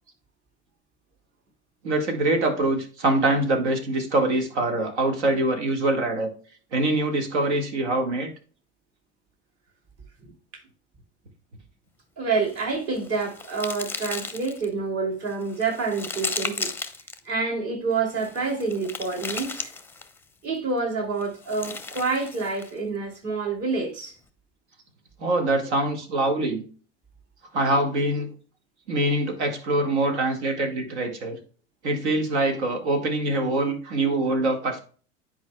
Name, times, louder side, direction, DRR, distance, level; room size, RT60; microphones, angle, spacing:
voice 1, 1.8-6.3 6.7-8.3 25.2-26.6 27.5-28.3 28.9-31.4 31.8-34.8, right 2 dB, 70° right, 1.9 m, -24 dB
voice 2, 12.2-16.7 17.2-19.7 20.4-24.2 25.6-25.7, right 4 dB, 45° right, 2.9 m, -28 dB
sound 1, 12.4-14.7 15.2-17.2 18.1-20.2 21.2-22.8, left 4 dB, 5° left, 0.7 m, -35 dB
10.5 x 4.8 x 2.3 m
hypercardioid pair, 80°, 35 cm